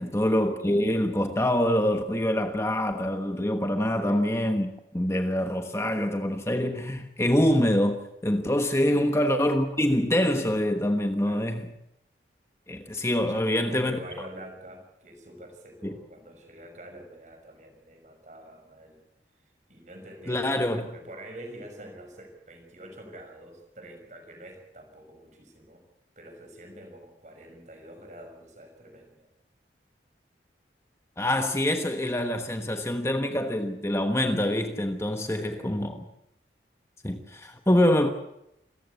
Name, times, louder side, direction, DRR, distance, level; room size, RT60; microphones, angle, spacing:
voice 1, 0.0-4.7 4.9-11.6 12.7-14.0 15.8-15.9 20.3-20.9 31.2-36.0 37.0-38.1, left 1 dB, 15° left, 1.2 m, -25 dB
voice 2, 13.3-19.0 19.7-25.8 26.2-29.3 35.2-35.7 37.4-37.5, right 1 dB, 40° right, 6.1 m, -45 dB
27.5 x 15.0 x 8.3 m
head